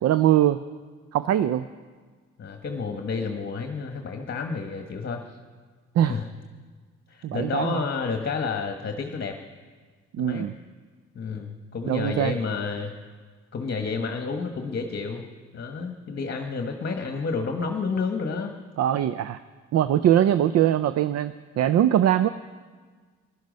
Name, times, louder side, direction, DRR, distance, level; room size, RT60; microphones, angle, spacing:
voice 1, 0.0-0.6 1.1-1.7 6.0-6.2 7.2-7.8 10.1-10.5 11.9-12.3 18.8-19.4 19.7-22.3, right 11 dB, 55° right, 13 dB, 0.5 m, -22 dB
voice 2, 2.4-5.2 6.1-6.3 7.1-9.4 10.2-10.5 11.1-12.9 13.5-15.3 15.5-18.5, left 4 dB, 40° left, 5 dB, 1.2 m, -30 dB
16.5 x 12.0 x 5.2 m, 1.5 s
cardioid pair, 90°, 30 cm